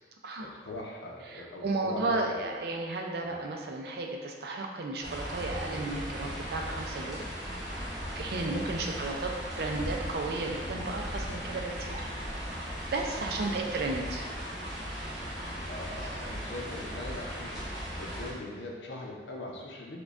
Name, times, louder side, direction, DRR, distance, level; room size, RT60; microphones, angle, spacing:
voice 1, 0.4-2.5 3.2-3.5 8.4-9.3 11.4-11.7 13.4-14.1 15.7-20.0, left 2 dB, 85° left, -1 dB, 0.6 m, -42 dB
voice 2, 1.3-7.3 8.1-12.1 12.9-14.2, right 3 dB, 60° right, 2 dB, 0.4 m, -33 dB
sound 1, 5.0-18.3, equal, ahead, 1.0 m, -37 dB
4.9 x 2.2 x 2.4 m, 1.5 s
head